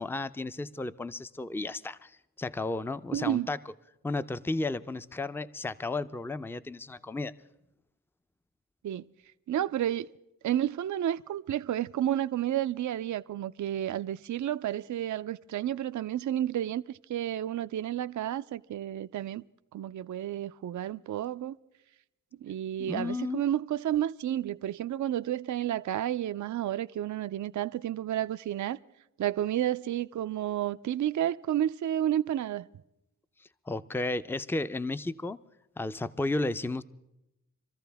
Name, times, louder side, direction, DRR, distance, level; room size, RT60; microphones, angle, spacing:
voice 1, 0.0-3.6 4.0-7.3 22.8-23.5 33.7-35.4 35.8-36.8, left 2 dB, 5° left, 0.5 m, -33 dB
voice 2, 3.1-3.5 8.8-9.0 9.5-10.1 10.4-19.5 19.7-21.6 22.4-28.8 29.2-32.7, right 11 dB, 55° right, 0.5 m, -31 dB
25.5 x 14.0 x 3.5 m
cardioid pair, 50°, 35 cm